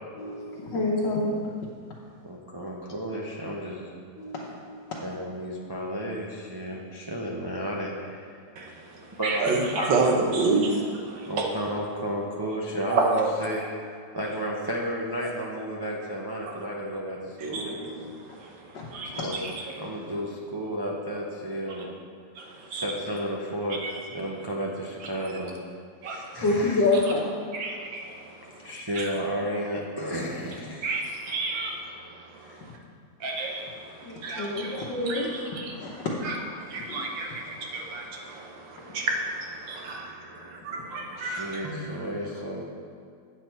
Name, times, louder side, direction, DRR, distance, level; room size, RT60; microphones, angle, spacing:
voice 1, 0.2-1.3 4.2-5.2 18.7-18.9 19.1-19.3 26.4-27.3 34.0-35.3 35.7-36.2 36.8-37.0, left 2 dB, 75° left, -6 dB, 1.7 m, -28 dB
voice 2, 2.2-3.9 5.0-8.3 9.2-9.9 11.3-13.6 14.1-17.8 19.2-21.9 22.7-23.8 24.1-25.6 26.1-26.8 28.5-30.9 32.4-32.6 35.1-35.3 41.2-42.7, equal, 40° right, -3 dB, 0.3 m, -33 dB
voice 3, 8.6-11.6 12.9-13.3 13.6-13.7 16.4-16.6 17.4-19.8 21.7-21.9 22.4-22.9 23.8-24.2 25.0-25.4 26.0-26.4 27.5-29.1 30.8-32.8 33.2-42.1, right 3 dB, 90° right, 1 dB, 1.8 m, -31 dB
8.6 x 7.4 x 4.5 m, 2.2 s
omnidirectional pair, 2.0 m